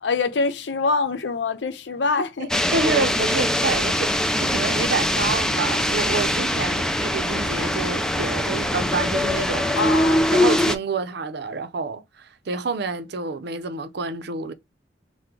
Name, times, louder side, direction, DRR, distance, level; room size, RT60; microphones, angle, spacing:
voice 1, 0.0-2.5 6.6-7.0 9.7-10.3, left 4 dB, 75° left, 0.6 m, -25 dB
sound 1, 2.5-10.7, left 1 dB, 5° left, 0.4 m, -22 dB
voice 2, 2.7-9.8 10.3-14.5, right 4 dB, 65° right, 0.6 m, -28 dB
3.7 x 2.1 x 4.4 m
head